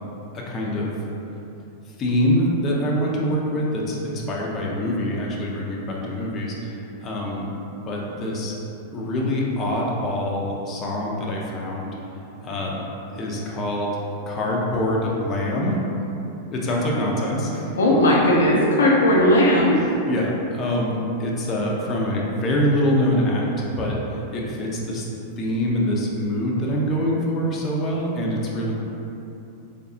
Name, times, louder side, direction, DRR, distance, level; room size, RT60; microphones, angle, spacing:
voice 1, 0.3-0.9 2.0-7.5 7.9-8.5 8.9-11.9 12.4-12.8 13.1-13.9 14.3-15.8 16.5-18.0 19.7-23.5 23.8-24.0 24.3-25.1 25.4-28.7, left 1 dB, 30° left, -3 dB, 0.7 m, -25 dB
voice 2, 17.8-19.8, left 1 dB, 70° left, -4 dB, 0.5 m, -17 dB
3.9 x 3.3 x 2.8 m, 2.9 s
figure-of-eight pair, 95°, 0 cm